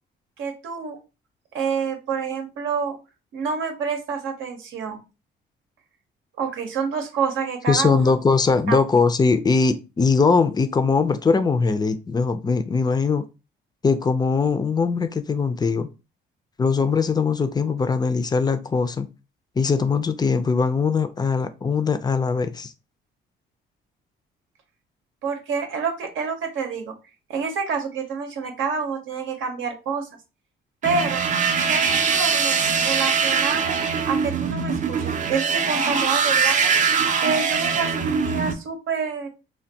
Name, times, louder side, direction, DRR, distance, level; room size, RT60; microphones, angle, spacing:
voice 1, 0.4-1.0 1.5-3.0 3.3-5.0 6.4-8.1 8.7-8.8 25.2-26.9 27.3-30.1 30.8-31.2 31.6-33.8 34.1-36.7 37.2-39.3, right 5 dB, 80° right, 0.7 m, -28 dB
voice 2, 7.7-13.3 13.8-15.9 16.6-19.1 19.6-22.7, left 4 dB, 20° left, 0.4 m, -21 dB
sound 1, 30.8-38.5, right 6 dB, 40° right, 0.4 m, -22 dB
3.4 x 2.2 x 2.7 m
cardioid pair, 90°, 20 cm